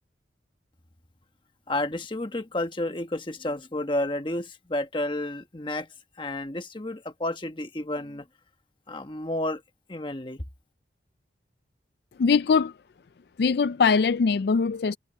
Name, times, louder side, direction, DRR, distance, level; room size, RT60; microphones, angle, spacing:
voice 1, 1.7-5.9 6.2-8.3 8.9-9.6 9.9-10.4, left 1 dB, 25° left, 1.3 m, -31 dB
voice 2, 12.2-12.7 13.4-15.0, left 5 dB, 60° left, 0.4 m, -22 dB
head